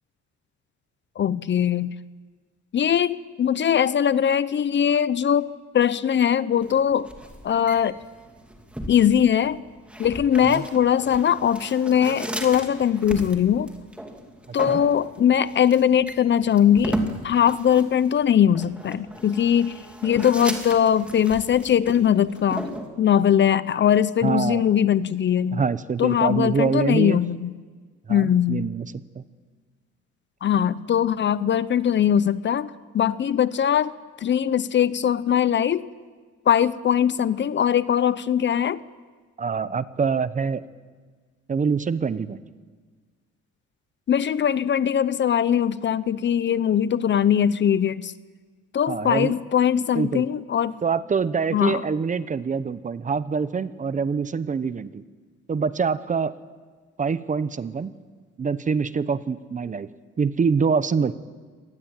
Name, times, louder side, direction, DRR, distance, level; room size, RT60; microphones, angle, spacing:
voice 1, 1.2-1.9 2.7-7.1 7.4-8.0 8.9-9.6 10.0-13.7 14.5-17.0 17.2-19.7 20.0-22.7 23.0-25.6 26.0-27.5 28.1-28.6 30.4-33.9 34.2-35.9 36.5-38.8 44.1-48.1 48.7-50.7 51.5-51.8, left 9 dB, 40° left, 17 dB, 0.6 m, -21 dB
sound 1, 6.6-22.9, equal, 5° right, 2.5 m, -36 dB
voice 2, 24.2-24.6 25.5-27.2 28.1-28.9 29.1-29.2 39.4-40.6 41.5-42.4 48.9-49.3 49.9-50.2 50.8-55.0 55.5-56.4 57.0-57.9 58.4-59.9 60.2-61.1, right 5 dB, 25° right, 15 dB, 0.8 m, -25 dB
25.5 x 19.5 x 8.9 m, 1.5 s
cardioid pair, 150°, 29 cm